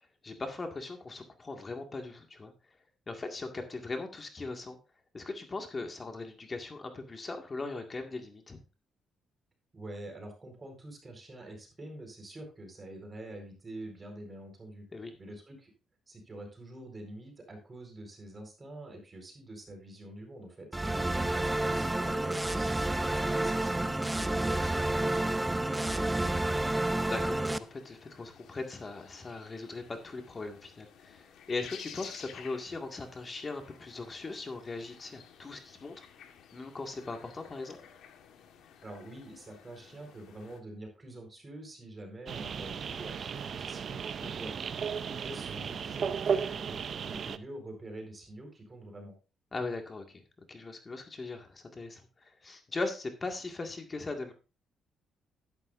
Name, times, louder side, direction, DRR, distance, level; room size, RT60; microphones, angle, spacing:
voice 1, 0.2-2.5 3.1-4.8 5.1-8.6 14.9-15.2 27.1-36.1 36.5-37.9 44.2-44.3 49.5-50.2 50.5-54.3, left 3 dB, 30° left, 4 dB, 2.0 m, -39 dB
voice 2, 9.7-14.9 15.2-15.7 16.1-26.6 38.8-44.0 44.3-44.6 44.8-49.1, right 1 dB, 30° right, 4 dB, 4.5 m, -46 dB
sound 1, 20.7-27.6, right 1 dB, 10° right, 0.6 m, -30 dB
sound 2, 21.1-40.6, left 8 dB, 80° left, 1.5 m, -54 dB
sound 3, 42.3-47.4, right 7 dB, 55° right, 0.6 m, -35 dB
11.5 x 11.0 x 2.6 m, 0.32 s
cardioid pair, 90°, 0 cm